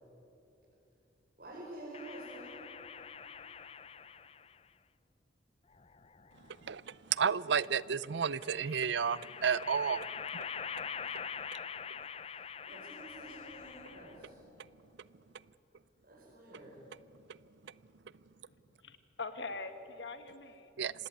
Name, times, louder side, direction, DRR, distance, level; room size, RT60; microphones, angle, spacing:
voice 1, 1.4-2.6 12.2-12.4 12.7-14.4 16.0-16.9, right 1 dB, 50° right, -6 dB, 5.0 m, -49 dB
sound 1, 1.9-4.6 5.7-6.7 8.3-14.3, left 7 dB, 30° left, 0.5 m, -44 dB
voice 2, 6.6-10.1 20.8-20.9, right 6 dB, 65° right, 20 dB, 0.5 m, -31 dB
voice 3, 18.5-20.7, left 3 dB, 65° left, 9 dB, 1.8 m, -43 dB
26.0 x 18.5 x 9.2 m, 3.0 s
head